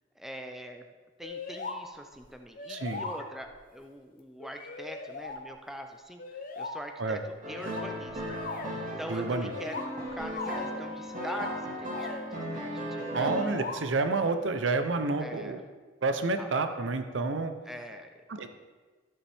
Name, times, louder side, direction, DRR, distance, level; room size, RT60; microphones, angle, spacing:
voice 1, 0.2-0.9 1.2-8.6 9.0-12.2 12.5-13.3 15.2-15.6 16.4-16.5 17.7-18.5, equal, ahead, 4 dB, 0.5 m, -43 dB
sound 1, 1.2-1.8 2.1-2.2 2.6-3.5 4.4-5.4 6.2-6.8 7.5-8.8 9.5-10.8 11.1-11.6 11.9-12.2 13.2-13.8, left 4 dB, 50° left, 0.9 m, -39 dB
voice 2, 2.7-3.0 7.0-7.2 9.1-9.5 13.1-15.6 16.0-17.5 18.3-18.5, right 3 dB, 90° right, 8 dB, 0.7 m, -29 dB
sound 2, 7.4-13.7, equal, 45° right, 2.0 m, -36 dB
13.0 x 7.1 x 3.5 m, 1.4 s
head